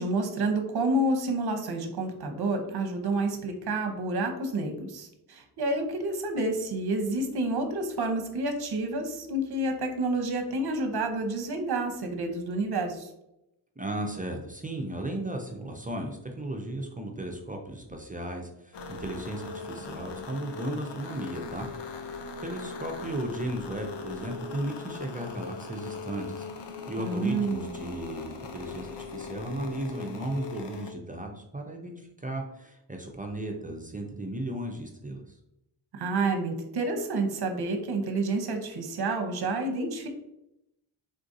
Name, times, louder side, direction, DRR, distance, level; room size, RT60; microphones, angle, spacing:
voice 1, 0.0-13.1 27.0-27.8 35.9-40.1, right 2 dB, 55° right, 5 dB, 0.7 m, -29 dB
voice 2, 13.8-21.7 22.4-26.5 26.9-35.2, right 1 dB, 20° right, 2 dB, 0.4 m, -35 dB
sound 1, 18.7-30.9, left 4 dB, 60° left, 0.5 m, -40 dB
3.9 x 2.5 x 2.5 m, 0.85 s
cardioid pair, 70°, 48 cm